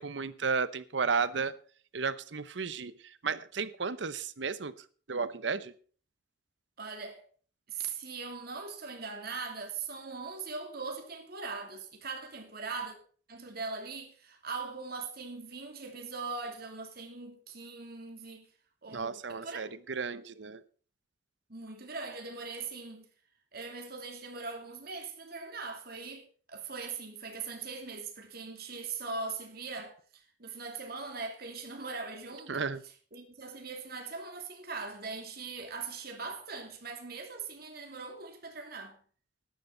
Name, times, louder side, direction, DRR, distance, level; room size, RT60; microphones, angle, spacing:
voice 1, 0.0-1.5 1.9-4.7 5.1-5.7 18.9-20.6 32.5-32.8, right 5 dB, 75° right, 0.9 m, -33 dB
voice 2, 6.8-7.2 7.7-13.0 13.3-18.5 18.8-19.7 21.5-23.1 23.5-32.6 33.1-39.0, right 4 dB, 55° right, 2.8 m, -41 dB
13.5 x 11.5 x 3.9 m
head